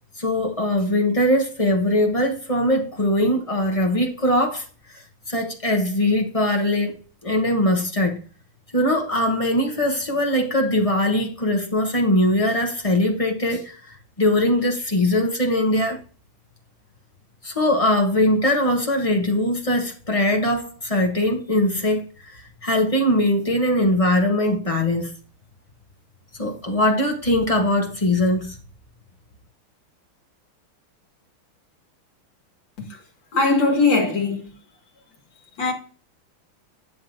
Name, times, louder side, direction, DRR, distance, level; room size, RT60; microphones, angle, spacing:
voice 1, 0.2-4.6 4.9-8.2 8.7-16.0 17.4-25.1 26.4-28.6, left 1 dB, 30° left, 0.6 m, -21 dB
voice 2, 33.3-34.5 35.6-35.7, left 3 dB, 60° left, 2.7 m, -20 dB
11.0 x 7.5 x 2.6 m
omnidirectional pair, 2.4 m